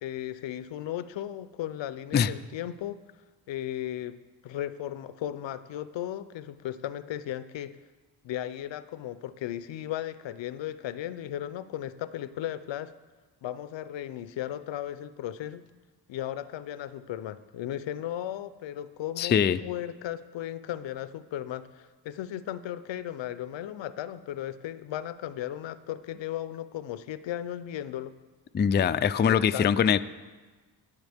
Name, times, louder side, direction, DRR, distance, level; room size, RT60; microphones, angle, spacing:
voice 1, 0.0-3.0 3.5-7.8 8.2-12.9 13.4-15.6 16.1-28.1 29.2-29.9, left 12 dB, 75° left, 14 dB, 0.6 m, -36 dB
voice 2, 19.2-19.6 28.5-30.0, left 7 dB, 25° left, 12 dB, 0.4 m, -23 dB
18.5 x 7.3 x 3.5 m, 1.3 s
cardioid pair, 80°, 45 cm